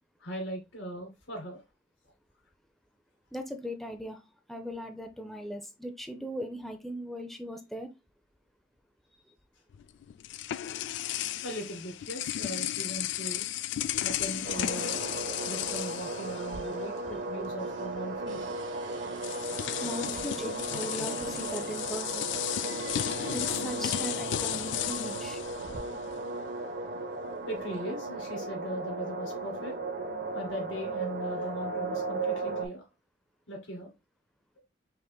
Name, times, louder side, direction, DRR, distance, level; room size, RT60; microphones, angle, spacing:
voice 1, 0.2-1.6 11.4-13.5 14.0-15.0 15.4-18.6 27.5-29.8 30.3-32.8 33.5-33.9, right 1 dB, 85° left, 2.3 m, -39 dB
voice 2, 3.3-4.2 4.5-7.9 9.2-9.3 19.8-22.3 22.9-23.0 23.3-25.4, equal, ahead, 0.5 m, -38 dB
sound 1, 9.7-17.0 17.3-17.5 18.6-18.7 19.2-26.3, left 12 dB, 65° left, 0.3 m, -34 dB
sound 2, 14.4-32.7, right 3 dB, 55° right, 1.0 m, -36 dB
sound 3, 16.4-17.3 17.6-24.4 25.2-25.8, right 2 dB, 75° right, 1.4 m, -50 dB
5.7 x 3.3 x 2.2 m
head